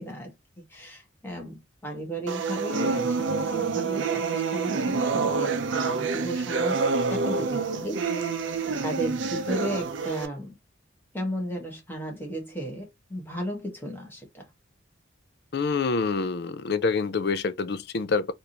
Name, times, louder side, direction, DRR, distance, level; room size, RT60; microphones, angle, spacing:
voice 1, 0.0-6.8 7.1-8.3 8.8-10.5 11.1-14.5, right 1 dB, 10° left, 1.2 m, -35 dB
sound 1, 2.3-10.3, right 4 dB, 65° right, 0.5 m, -27 dB
voice 2, 15.5-18.3, left 4 dB, 50° left, 0.4 m, -26 dB
3.4 x 2.6 x 2.9 m
head